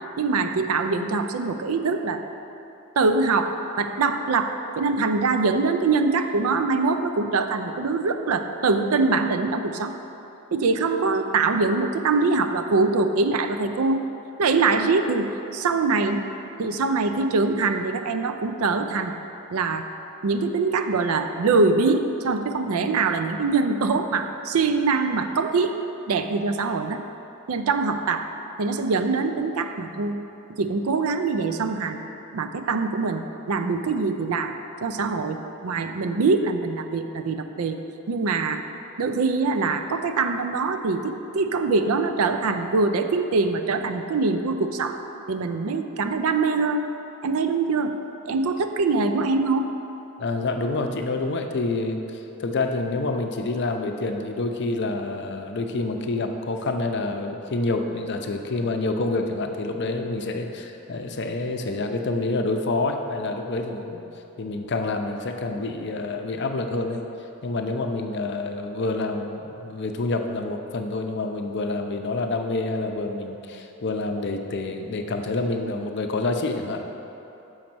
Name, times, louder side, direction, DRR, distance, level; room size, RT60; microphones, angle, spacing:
voice 1, 0.2-2.2 3.0-9.9 10.5-14.0 14.4-16.2 16.6-19.1 19.5-19.9 20.2-25.8 26.1-27.0 27.5-28.3 28.6-30.1 30.6-32.0 32.3-35.4 35.6-37.8 38.1-38.6 39.0-45.0 45.3-46.9 47.2-47.9 48.3-49.7, right 4 dB, 75° right, 7 dB, 0.5 m, -23 dB
voice 2, 50.2-64.0 64.4-67.0 67.4-76.8, left 2 dB, 50° left, 5 dB, 0.5 m, -27 dB
6.4 x 5.2 x 6.0 m, 3.0 s
head